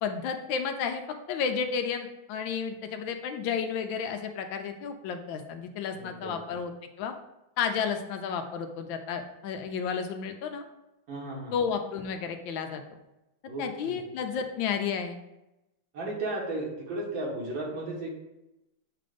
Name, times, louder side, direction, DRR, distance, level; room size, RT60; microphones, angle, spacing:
voice 1, 0.0-6.7 7.0-7.1 7.6-10.6 11.5-12.8 13.6-15.2, left 6 dB, 75° left, 6 dB, 1.3 m, -32 dB
voice 2, 5.9-6.5 11.1-11.5 13.5-14.0 15.9-18.2, right 2 dB, 70° right, -2 dB, 2.1 m, -35 dB
7.5 x 2.5 x 5.0 m, 0.93 s
omnidirectional pair, 2.2 m